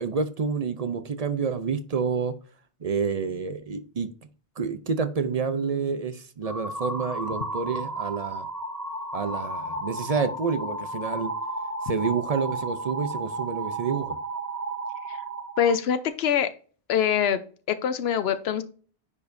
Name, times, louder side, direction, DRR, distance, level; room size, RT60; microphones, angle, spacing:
voice 1, 0.0-2.3 2.8-4.1 4.6-8.5 9.1-11.3 11.8-14.2, right 5 dB, 45° right, 10 dB, 0.6 m, -28 dB
sound 1, 6.4-15.7, right 2 dB, 20° right, 0.9 m, -33 dB
voice 2, 15.6-16.5 16.9-17.4 17.7-18.6, left 8 dB, 85° left, 12 dB, 0.9 m, -24 dB
9.7 x 4.7 x 2.6 m, 0.40 s
omnidirectional pair, 1.0 m